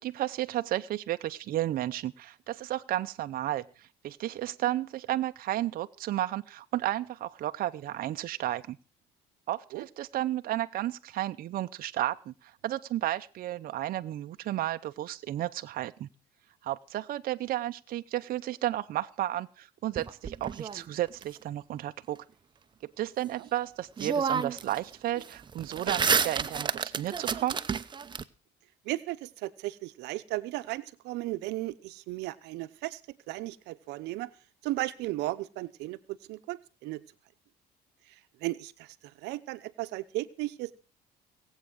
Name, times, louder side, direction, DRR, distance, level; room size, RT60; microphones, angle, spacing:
voice 1, 0.0-8.8 9.5-16.1 16.6-22.2 23.0-27.6, right 14 dB, 60° right, 9 dB, 0.7 m, -33 dB
sound 1, 20.0-21.2 23.5-23.6 24.0-24.8 25.1-28.2, right 6 dB, 25° right, 0.8 m, -30 dB
voice 2, 28.8-33.0 33.3-34.3 34.6-37.0 38.4-38.9 39.2-40.7, right 18 dB, 90° right, 13 dB, 0.8 m, -35 dB
19.0 x 8.3 x 6.2 m, 0.36 s
cardioid pair, 110°, 17 cm